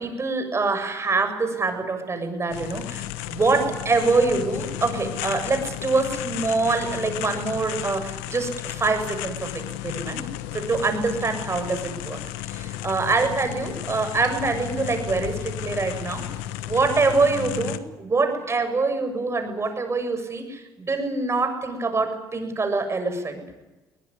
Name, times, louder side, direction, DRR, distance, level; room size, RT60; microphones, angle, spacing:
voice 1, 0.0-10.2 10.5-16.2 16.6-23.4, right 3 dB, 30° right, 7 dB, 7.2 m, -25 dB
sound 1, 2.5-17.8, left 13 dB, 85° left, 1.3 m, -33 dB
22.5 x 19.5 x 10.0 m, 1.1 s
supercardioid pair, 65°, 9 cm